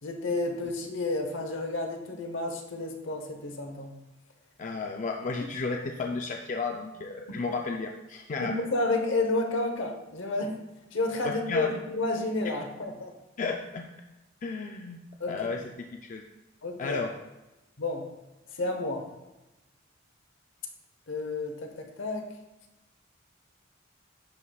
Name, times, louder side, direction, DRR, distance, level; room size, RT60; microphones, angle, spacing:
voice 1, 0.0-4.0 7.3-7.4 8.4-10.6 10.9-13.1 15.2-15.6 16.6-17.1 17.8-18.1 18.6-19.1 21.1-22.3, left 2 dB, 65° left, 4 dB, 0.9 m, -31 dB
voice 2, 4.6-8.5 11.2-11.7 13.4-13.9 14.4-15.0 15.3-15.6 15.9-16.2 16.8-17.1, left 4 dB, 40° left, 2 dB, 0.4 m, -33 dB
10.5 x 4.9 x 2.3 m, 1.0 s
head